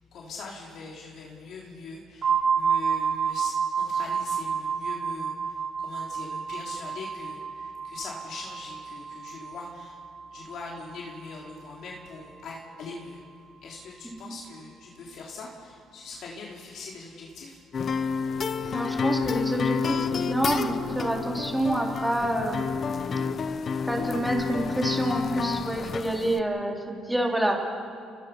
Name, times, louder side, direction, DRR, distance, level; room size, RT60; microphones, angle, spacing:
voice 1, 0.1-10.0 10.3-13.2 13.6-17.6, left 3 dB, 60° left, -3 dB, 3.5 m, -42 dB
sound 1, 2.2-11.8, right 6 dB, 45° right, 2.9 m, -30 dB
sound 2, 17.7-26.4, left 6 dB, 40° left, 0.8 m, -29 dB
voice 2, 18.7-22.9 23.9-27.6, right 1 dB, 5° right, 0 dB, 3.9 m, -28 dB
29.0 x 19.0 x 5.7 m, 2.4 s
cardioid pair, 100°, 0 cm